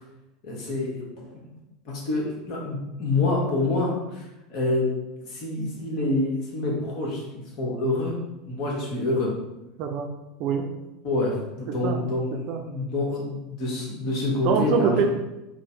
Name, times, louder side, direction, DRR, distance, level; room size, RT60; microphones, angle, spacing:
voice 1, 0.4-1.4 1.8-4.9 5.2-8.1 8.5-9.3 11.0-12.3 12.7-15.0, left 2 dB, 50° left, -3 dB, 1.3 m, -27 dB
voice 2, 11.7-12.0 12.3-12.6 14.4-15.0, right 7 dB, 50° right, 4 dB, 0.5 m, -24 dB
3.7 x 2.1 x 4.4 m, 0.98 s
figure-of-eight pair, 80°, 0 cm